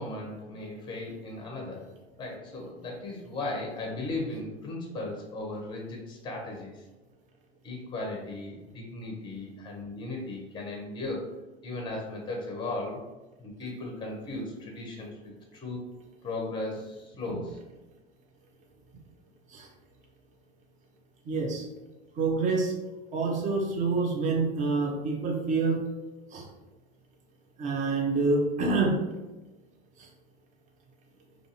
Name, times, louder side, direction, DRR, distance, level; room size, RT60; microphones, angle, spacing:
voice 1, 0.0-1.9 2.2-6.8 7.6-11.2 11.6-13.0 13.4-15.1 15.5-15.8 16.2-17.6, left 2 dB, 15° left, 0 dB, 0.7 m, -36 dB
voice 2, 21.2-21.7 22.2-22.7 23.1-25.8 26.3-26.5 27.6-29.0 30.0-30.1, right 3 dB, 25° right, 0 dB, 0.6 m, -27 dB
2.5 x 2.4 x 2.7 m, 1.1 s
hypercardioid pair, 90°, 32 cm